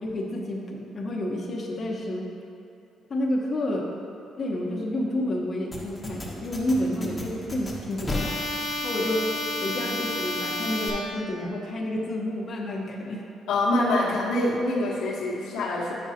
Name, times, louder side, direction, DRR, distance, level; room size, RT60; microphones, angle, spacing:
voice 1, 0.0-2.3 3.1-3.9 4.4-8.4 8.8-9.3 9.6-13.3, left 1 dB, 40° left, -3 dB, 1.0 m, -29 dB
sound 1, 5.7-10.9, left 1 dB, 15° left, 1.3 m, -31 dB
voice 2, 13.5-15.9, left 1 dB, 85° left, -4 dB, 1.1 m, -25 dB
9.3 x 6.4 x 2.8 m, 2.6 s
cardioid pair, 90°, 0 cm